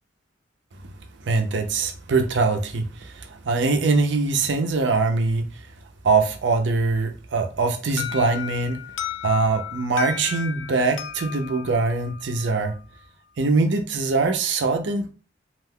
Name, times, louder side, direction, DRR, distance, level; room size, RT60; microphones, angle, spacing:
voice 1, 1.2-5.7 6.0-8.8 9.2-12.7 13.4-15.1, right 3 dB, 70° right, 0.5 m, -23 dB
Alarm, 8.0-12.8, left 8 dB, 90° left, 0.4 m, -34 dB
2.4 x 2.2 x 3.5 m
head